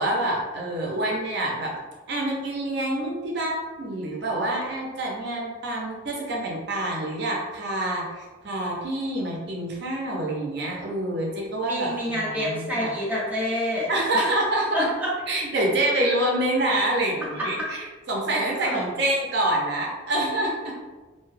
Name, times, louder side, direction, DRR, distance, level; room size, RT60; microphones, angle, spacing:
voice 1, 0.0-1.7 2.1-12.9 13.9-14.9 15.3-17.8 18.1-20.7, right 1 dB, 55° right, -2 dB, 0.6 m, -26 dB
voice 2, 11.7-14.3 14.7-15.1 17.4-17.7 18.3-18.8, equal, 10° right, -7 dB, 0.6 m, -28 dB
2.7 x 2.2 x 3.1 m, 1.3 s
head